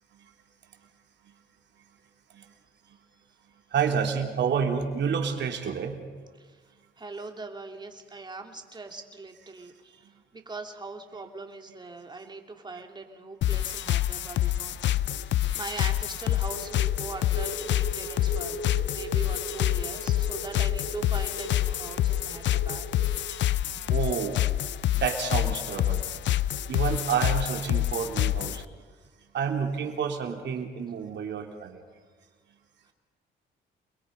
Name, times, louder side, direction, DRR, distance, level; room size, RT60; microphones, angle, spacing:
voice 1, 3.7-6.1 15.1-15.2 15.5-15.6 18.8-18.9 23.6-24.4 24.9-26.1 26.7-28.6 29.3-31.8, right 7 dB, 65° right, 3 dB, 3.4 m, -29 dB
voice 2, 7.0-10.0 10.3-14.8 15.0-15.2 15.6-22.9, right 3 dB, 20° right, 4 dB, 2.9 m, -41 dB
sound 1, 13.4-28.6, left 13 dB, 70° left, 0.6 m, -27 dB
sound 2, 16.5-23.1, equal, 90° left, 5.5 m, -39 dB
28.5 x 22.0 x 5.4 m, 1.5 s
cardioid pair, 90°, 20 cm